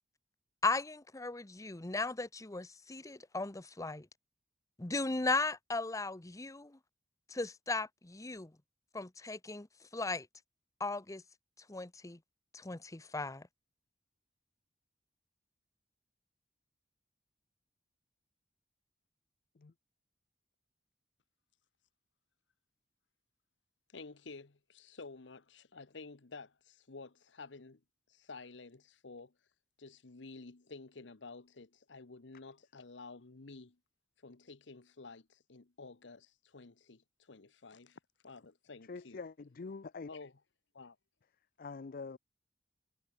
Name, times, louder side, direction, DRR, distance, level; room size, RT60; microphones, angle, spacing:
voice 1, 0.6-4.1 4.8-6.8 7.3-8.5 8.9-9.7 9.9-10.3 10.8-11.2 11.7-12.2 12.5-13.4, left 3 dB, 20° left, 0.8 m, -36 dB
voice 2, 23.9-27.8 28.1-29.3 29.8-33.8 34.2-39.2 40.1-40.3 40.7-41.0, left 3 dB, 85° left, 1.1 m, -51 dB
voice 3, 38.9-40.1 41.6-42.2, left 4 dB, 55° left, 0.5 m, -44 dB
head